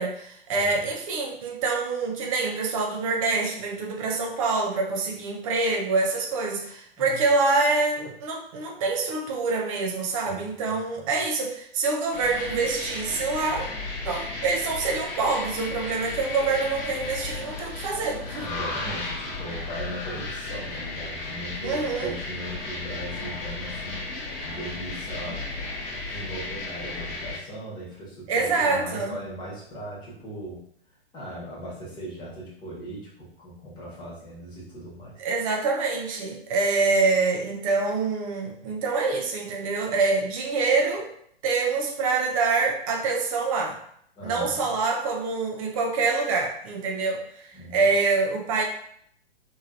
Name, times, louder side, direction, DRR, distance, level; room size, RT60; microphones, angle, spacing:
voice 1, 0.0-13.7 14.0-18.5 21.6-22.1 28.3-29.2 35.2-41.1 41.4-43.8 44.2-48.6, right 3 dB, 35° right, 2 dB, 0.5 m, -26 dB
voice 2, 0.5-0.9 7.0-7.2 10.2-10.4 10.6-11.2 17.7-17.8 18.3-24.0 24.4-25.5 26.1-30.6 31.1-35.5 44.2-44.7 47.5-47.8, right 1 dB, 15° left, -7 dB, 1.2 m, -39 dB
sound 1, 12.1-27.4, left 3 dB, 45° left, 0.9 m, -34 dB
3.0 x 2.7 x 2.4 m, 0.65 s
figure-of-eight pair, 120°, 31 cm